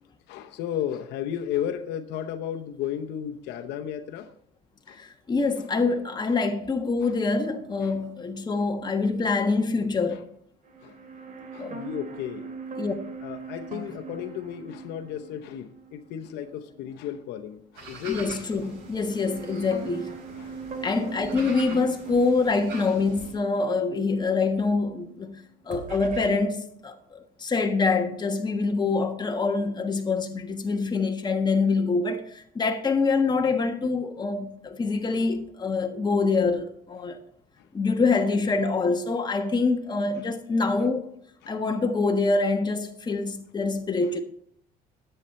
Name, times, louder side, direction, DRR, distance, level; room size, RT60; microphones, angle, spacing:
voice 1, 0.0-4.3 4.9-5.0 5.6-5.7 6.3-6.4 7.0-7.2 7.8-8.0 10.1-10.2 10.8-11.0 11.5-12.5 13.2-18.2 20.4-20.6 37.6-37.7 41.4-41.6, left 10 dB, 85° left, 0.8 m, -34 dB
voice 2, 4.9-10.2 11.6-11.8 12.8-12.9 18.1-20.2 20.8-25.3 25.7-37.2 37.7-41.1 41.5-44.2, left 4 dB, 25° left, 1.4 m, -25 dB
sound 1, 10.6-16.9 17.2-17.3 18.4-25.3 25.7-26.3, right 5 dB, 50° right, 2.3 m, -41 dB
sound 2, 17.7-23.3, right 3 dB, 90° right, 5.0 m, -44 dB
10.5 x 8.2 x 4.2 m
cardioid pair, 110°, 17 cm